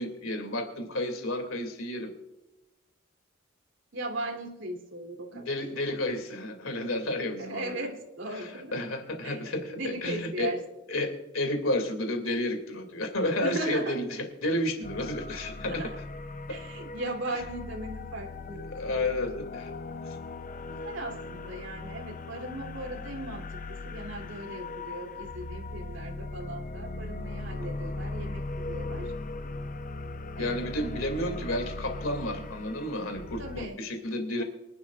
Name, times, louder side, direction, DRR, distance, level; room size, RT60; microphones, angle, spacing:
voice 1, 0.0-2.1 5.3-7.8 8.3-10.5 10.9-15.9 18.7-19.7 20.0-20.2 30.4-34.4, left 1 dB, 90° left, 6 dB, 2.5 m, -31 dB
voice 2, 3.9-5.6 7.4-8.7 9.2-9.4 9.7-10.6 13.4-14.0 15.6-15.9 16.5-18.7 20.7-29.1 30.4-30.7 33.4-33.8 34.4-34.5, right 2 dB, 65° right, 2 dB, 2.9 m, -38 dB
sound 1, 14.8-33.7, left 2 dB, 40° left, 0.6 m, -39 dB
24.5 x 11.5 x 2.4 m, 0.98 s
head